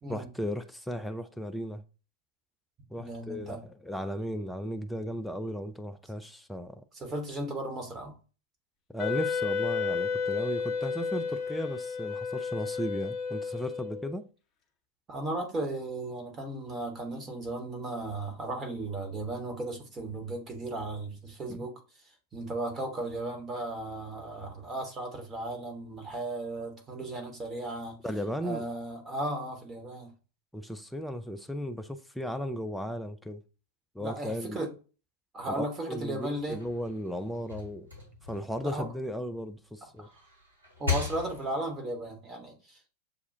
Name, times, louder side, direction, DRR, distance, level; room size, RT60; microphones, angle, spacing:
voice 1, 0.1-1.8 2.9-6.8 8.9-14.2 21.5-21.7 28.0-28.7 30.5-33.4 34.0-34.6 35.5-37.9 38.2-40.1, equal, 5° left, 0.3 m, -36 dB
voice 2, 3.0-3.6 6.9-8.1 15.1-21.8 22.3-28.0 28.4-30.1 34.0-34.7 35.3-36.6 38.6-38.9 40.0-40.1 40.8-42.9, right 2 dB, 20° right, 1.2 m, -35 dB
Wind instrument woodwind instrument, 9.0-14.2, left 5 dB, 30° left, 0.8 m, -32 dB
sound 1, 36.5-39.5 40.0-41.8, left 5 dB, 80° right, 1.6 m, -37 dB
6.9 x 2.3 x 2.7 m
figure-of-eight pair, 90°, 0 cm